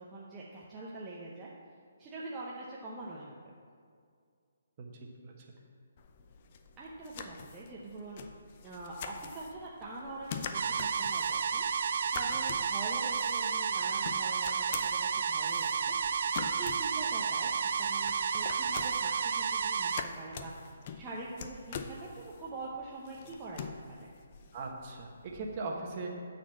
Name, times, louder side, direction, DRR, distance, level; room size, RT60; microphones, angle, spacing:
voice 1, 0.0-1.5 2.0-3.4 6.8-8.2 8.6-11.6 12.1-15.9 16.4-17.5 17.8-19.9 20.2-24.1, right 2 dB, 15° right, -6 dB, 0.8 m, -44 dB
voice 2, 4.8-5.5 24.5-26.1, right 3 dB, 30° right, 0 dB, 1.3 m, -40 dB
sound 1, 6.0-25.6, left 6 dB, 35° left, 0.6 m, -46 dB
sound 2, 10.5-20.0, right 6 dB, 55° right, 0.4 m, -31 dB
9.1 x 4.3 x 7.3 m, 2.2 s
hypercardioid pair, 160°, 0 cm